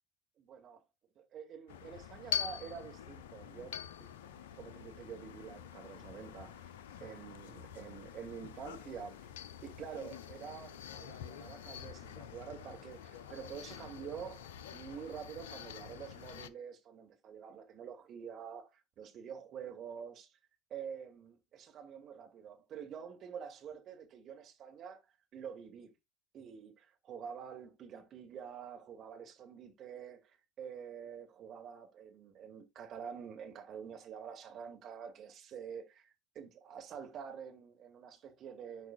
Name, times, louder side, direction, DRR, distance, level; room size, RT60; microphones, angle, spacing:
voice 1, 0.4-0.8 1.2-4.1 4.6-6.7 7.0-9.3 9.6-20.4 20.7-25.0 25.3-25.9 26.3-38.9, right 7 dB, 45° right, 2.1 m, -47 dB
sound 1, 1.7-16.5, left 9 dB, 70° left, 0.5 m, -45 dB
13.5 x 4.8 x 2.4 m
figure-of-eight pair, 70°, 0 cm